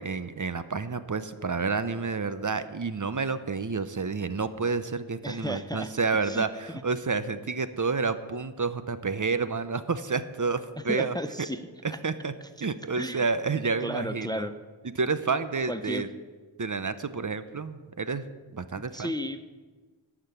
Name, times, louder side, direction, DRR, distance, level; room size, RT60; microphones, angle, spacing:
voice 1, 0.0-11.1 12.0-12.3 12.6-14.5 15.0-16.1 16.6-18.2 18.5-19.1, right 4 dB, 40° right, 12 dB, 0.9 m, -29 dB
voice 2, 5.2-5.9 6.2-6.8 10.9-11.6 11.9-12.0 12.6-12.7 13.0-13.3 13.8-14.5 15.7-16.1 18.7-19.4, equal, 10° left, 11 dB, 0.6 m, -34 dB
14.0 x 6.1 x 9.7 m, 1.4 s
wide cardioid pair, 55°, 46 cm